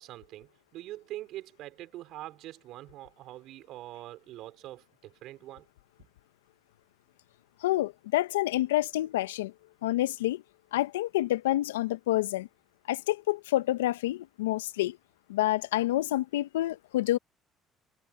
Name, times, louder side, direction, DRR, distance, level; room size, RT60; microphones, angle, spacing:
voice 1, 0.0-5.7, right 15 dB, 65° right, 5.0 m, -44 dB
voice 2, 7.6-9.5 9.8-10.4 10.7-12.5 12.9-15.0 15.3-17.2, left 15 dB, 85° left, 1.1 m, -28 dB
hypercardioid pair, 60°, 0 cm